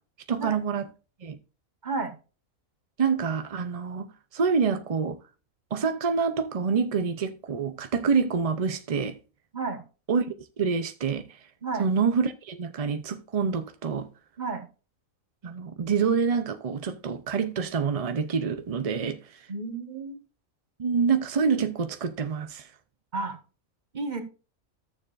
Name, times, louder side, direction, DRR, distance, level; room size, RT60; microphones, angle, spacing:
voice 1, 0.3-0.9 1.2-1.4 3.0-4.1 4.3-5.2 5.7-9.2 10.1-11.2 11.8-14.1 15.4-19.2 20.8-22.7, right 5 dB, 50° right, 0.4 m, -26 dB
voice 2, 19.5-20.2 23.1-23.4 23.9-24.2, right 3 dB, 35° right, 1.4 m, -31 dB
14.0 x 6.9 x 2.5 m
omnidirectional pair, 1.4 m